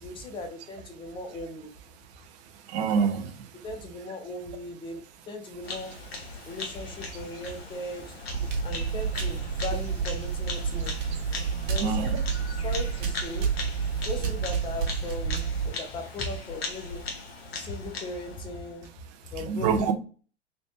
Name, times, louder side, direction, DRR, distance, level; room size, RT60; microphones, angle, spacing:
voice 1, 0.0-1.7 3.6-6.0 6.4-8.0 8.6-10.9 11.6-12.2 12.6-13.5 14.1-17.0 17.5-18.9 19.3-19.9, left 1 dB, 15° left, 0.7 m, -37 dB
voice 2, 2.7-3.3 11.8-12.2 19.5-19.9, right 6 dB, 25° right, 0.5 m, -25 dB
Bird vocalization bird call bird song, 5.6-18.9, left 3 dB, 65° left, 1.0 m, -39 dB
sound 1, 8.3-15.7, right 6 dB, 50° right, 1.0 m, -30 dB
3.2 x 3.0 x 2.8 m
figure-of-eight pair, 100°, 33 cm